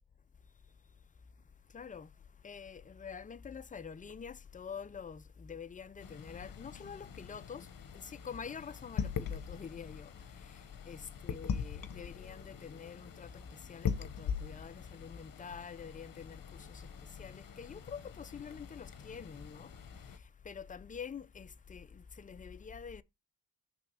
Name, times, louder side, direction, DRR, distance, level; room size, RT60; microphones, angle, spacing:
voice 1, 0.4-1.0 1.4-23.0, left 6 dB, 20° left, 0.4 m, -47 dB
sound 1, 6.0-20.2, left 7 dB, 50° left, 0.9 m, -42 dB
5.9 x 3.4 x 5.5 m
cardioid pair, 70°, 44 cm